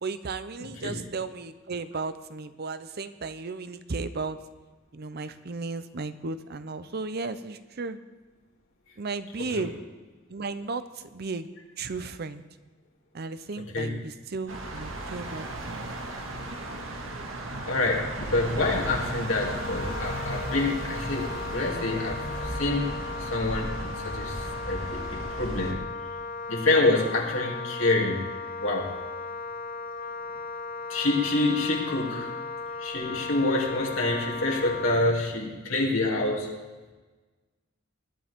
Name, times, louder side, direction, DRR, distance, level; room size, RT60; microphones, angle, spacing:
voice 1, 0.0-4.4 4.9-8.0 9.0-9.8 10.3-11.5 11.8-12.4 13.1-16.0, right 4 dB, 50° right, 12 dB, 0.7 m, -35 dB
voice 2, 0.6-0.9 9.5-9.7 13.7-13.9 17.7-24.4 24.7-25.8 26.5-28.2 28.6-28.9 30.9-32.3 32.8-36.5, left 2 dB, 80° left, -2 dB, 2.9 m, -27 dB
sound 1, 14.5-25.7, right 1 dB, 85° right, 1.8 m, -35 dB
Wind instrument woodwind instrument, 18.7-35.0, left 4 dB, 45° left, 0.6 m, -37 dB
21.0 x 12.0 x 3.7 m, 1.2 s
head